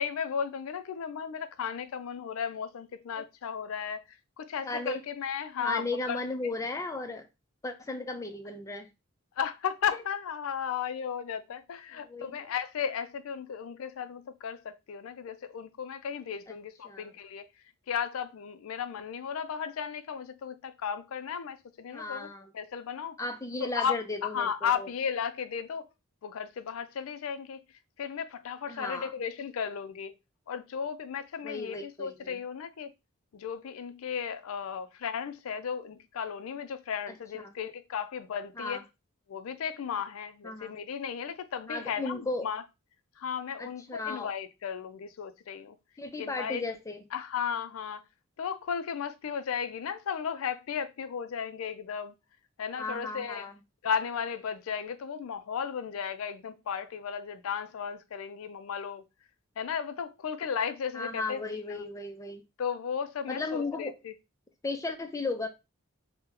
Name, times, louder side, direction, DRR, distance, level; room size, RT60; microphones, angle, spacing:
voice 1, 0.0-6.2 9.4-17.5 17.9-22.3 22.5-23.2 23.6-25.8 26.2-27.6 28.0-30.2 30.5-32.9 33.3-38.8 39.3-42.6 43.2-45.8 46.2-46.6 47.1-48.0 48.4-52.2 52.6-53.4 53.8-59.0 59.6-61.4 61.7-61.8 62.6-64.1, left 7 dB, 80° left, 0.4 m, -35 dB
voice 2, 4.6-5.0 5.6-7.3 7.6-8.9 12.0-12.5 16.8-17.1 21.9-22.5 23.2-24.9 28.7-29.1 31.4-32.4 37.1-37.2 38.6-38.8 40.4-40.7 41.7-42.5 43.6-44.3 46.0-47.0 52.8-53.5 60.9-62.4 63.3-63.9 64.6-65.5, left 3 dB, 15° left, 0.4 m, -35 dB
2.9 x 2.1 x 3.6 m
head